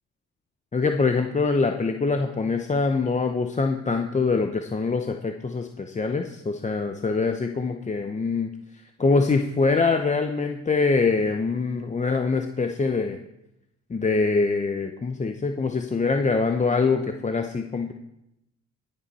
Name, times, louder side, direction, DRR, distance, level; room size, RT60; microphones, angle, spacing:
voice 1, 0.7-8.5 9.0-13.2 13.9-17.9, left 4 dB, 25° left, 5 dB, 0.8 m, -24 dB
15.5 x 8.6 x 4.2 m, 0.85 s
cardioid pair, 90°, 30 cm